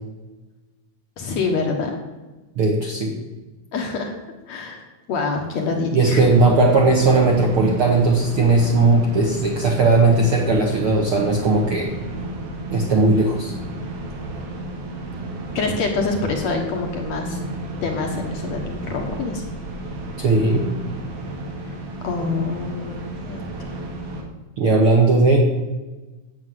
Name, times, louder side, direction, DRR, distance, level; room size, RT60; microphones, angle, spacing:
voice 1, 1.2-2.0 3.7-4.1 4.5-6.3 15.6-17.4 17.8-19.4 21.6-23.7, left 4 dB, 60° left, 2 dB, 2.2 m, -26 dB
voice 2, 2.5-3.1 5.9-11.9 12.7-13.5 20.2-20.7 24.6-25.5, right 3 dB, 60° right, 0 dB, 1.5 m, -17 dB
sound 1, 6.2-24.2, right 1 dB, 85° right, 3.8 m, -32 dB
9.6 x 8.2 x 7.7 m, 1.2 s
omnidirectional pair, 4.2 m